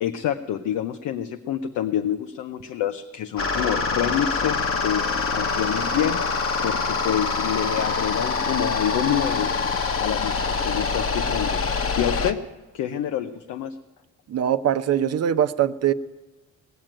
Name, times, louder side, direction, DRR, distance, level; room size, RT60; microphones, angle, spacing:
voice 1, 0.0-6.3 6.6-9.5 10.0-12.4 12.7-13.8, left 10 dB, 85° left, 7 dB, 0.7 m, -27 dB
sound 1, 3.4-12.3, left 4 dB, 45° left, 1.1 m, -25 dB
voice 2, 14.3-15.9, right 10 dB, 55° right, 10 dB, 0.7 m, -22 dB
19.0 x 7.5 x 9.0 m, 1.2 s
cardioid pair, 90°, 30 cm